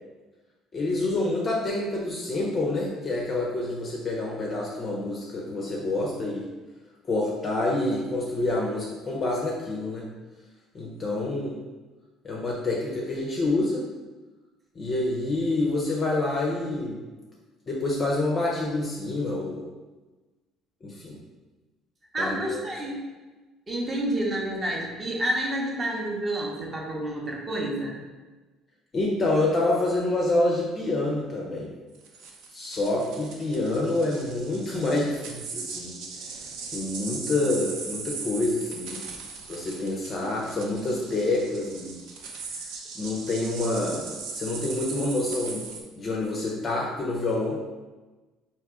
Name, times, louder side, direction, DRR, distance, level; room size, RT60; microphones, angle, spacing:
voice 1, 0.7-6.5 7.0-10.1 10.7-11.6 12.2-13.8 14.8-17.0 17.7-19.7 20.8-21.2 22.2-22.6 28.9-31.7 32.5-36.0 36.7-39.0 39.5-42.0 42.9-45.6 46.0-47.6, left 2 dB, 25° left, -2 dB, 0.5 m, -27 dB
voice 2, 22.1-23.0 23.7-28.0, right 1 dB, 20° right, -2 dB, 0.7 m, -29 dB
sound 1, 31.9-45.8, right 4 dB, 70° right, 0.6 m, -39 dB
3.5 x 2.8 x 4.7 m, 1.2 s
cardioid pair, 175°, 0 cm